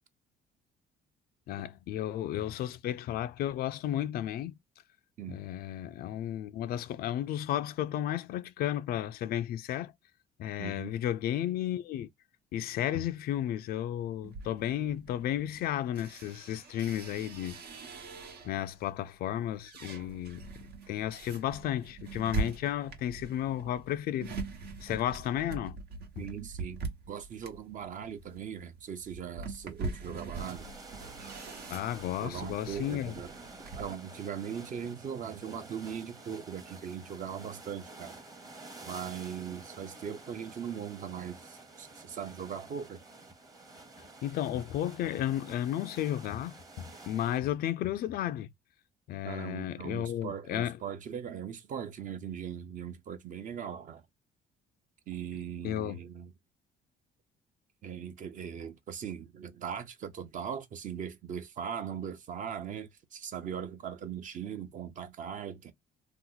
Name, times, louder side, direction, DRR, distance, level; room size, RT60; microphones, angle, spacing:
voice 1, 1.5-4.6 5.3-9.9 10.4-12.1 12.5-17.6 18.4-20.4 20.9-24.3 24.8-25.8 26.2-26.3 31.7-33.1 44.2-48.5 49.1-50.8 55.6-56.0, left 11 dB, 65° left, 0.4 m, -33 dB
voice 2, 10.6-10.9 26.2-30.7 32.2-33.3 33.7-38.2 38.8-43.0 49.2-54.0 55.1-56.3 57.8-65.7, right 8 dB, 50° right, 0.8 m, -40 dB
sound 1, 14.2-18.7 19.2-33.9, right 4 dB, 70° right, 1.1 m, -42 dB
sound 2, 30.3-47.4, right 3 dB, 20° right, 0.9 m, -50 dB
2.9 x 2.1 x 3.8 m
cardioid pair, 110°, 17 cm